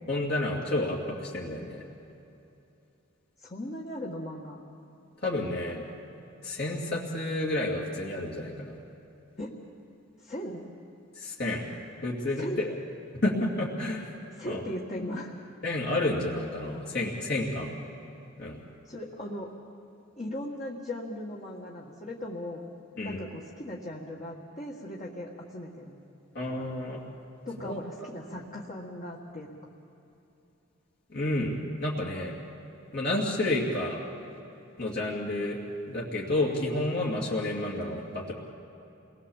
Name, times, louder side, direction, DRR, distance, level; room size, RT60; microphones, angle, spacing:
voice 1, 0.1-1.8 5.2-5.9 6.4-8.7 11.2-11.6 12.0-12.7 13.2-14.1 14.4-14.6 15.6-17.7 18.4-18.6 23.0-23.2 26.3-27.0 27.6-27.8 31.1-31.5 31.8-32.3 32.9-34.0 34.8-35.6 35.9-38.3, left 2 dB, 50° left, -5 dB, 2.7 m, -30 dB
voice 2, 3.4-4.6 9.4-9.6 10.2-10.7 12.4-12.6 14.3-15.3 18.9-19.5 20.2-22.7 23.0-26.0 27.5-29.7, left 1 dB, 35° left, -3 dB, 1.8 m, -38 dB
29.0 x 20.5 x 7.3 m, 2.8 s
head